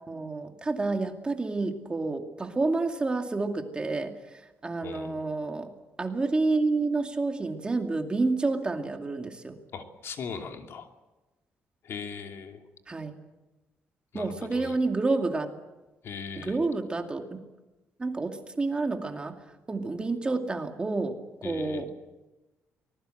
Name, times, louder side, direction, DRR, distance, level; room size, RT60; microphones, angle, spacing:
voice 1, 0.0-5.7 6.0-9.6 12.9-13.2 14.1-15.5 16.4-17.3 18.0-21.9, right 3 dB, 20° right, 4 dB, 2.4 m, -29 dB
voice 2, 4.8-5.2 9.7-10.9 11.8-12.6 14.1-14.8 16.0-16.6 21.4-21.8, left 6 dB, 60° left, 4 dB, 2.8 m, -39 dB
24.5 x 21.0 x 8.0 m, 1.1 s
cardioid pair, 135°, 5 cm